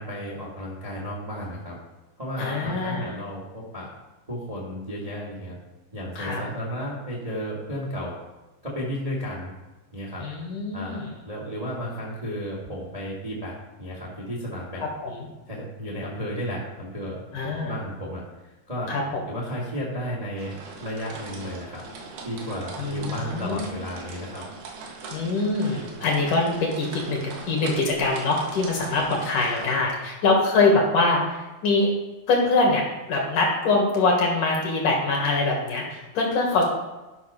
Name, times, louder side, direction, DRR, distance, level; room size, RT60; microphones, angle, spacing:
voice 1, 0.0-1.8 2.2-3.9 4.3-5.6 5.9-8.1 8.6-9.5 9.9-10.3 10.7-13.5 13.8-14.8 15.5-17.2 17.6-18.2 18.7-18.9 19.3-21.8 22.2-24.4, equal, 15° right, -4 dB, 1.4 m, -33 dB
voice 2, 2.4-3.1 6.2-6.4 10.2-11.1 15.0-15.3 17.3-17.7 18.9-19.2 22.8-23.7 25.1-31.9 32.3-36.6, left 3 dB, 55° left, -1 dB, 2.9 m, -24 dB
sound 1, 20.4-29.7, right 4 dB, 85° right, 3.8 m, -41 dB
12.5 x 6.0 x 5.8 m, 1.1 s
omnidirectional pair, 4.7 m